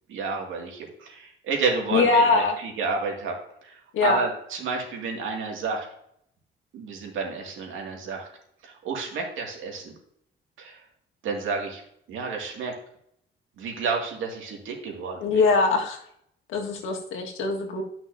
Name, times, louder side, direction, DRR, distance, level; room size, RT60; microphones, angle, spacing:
voice 1, 0.1-3.3 3.6-3.8 4.0-5.9 6.7-8.3 8.6-9.9 10.6-10.8 11.2-11.8 12.1-12.7 13.6-15.4, right 4 dB, 80° right, 1 dB, 2.3 m, -30 dB
voice 2, 1.9-2.6 3.9-4.2 15.2-16.0 16.5-17.8, left 4 dB, 85° left, 1 dB, 1.7 m, -22 dB
12.0 x 5.9 x 2.7 m, 0.70 s
cardioid pair, 90°, 20 cm